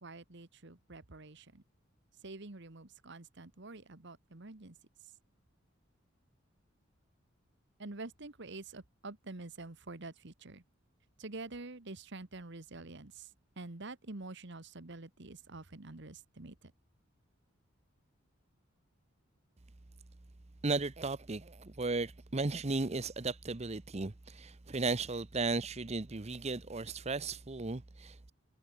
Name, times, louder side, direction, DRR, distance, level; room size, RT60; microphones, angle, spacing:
voice 1, 0.0-1.6 2.2-4.8 7.8-10.6 11.2-13.3 13.6-16.7, right 2 dB, 60° right, 1.5 m, -47 dB
voice 2, 20.6-28.3, right 3 dB, 30° right, 0.8 m, -35 dB
head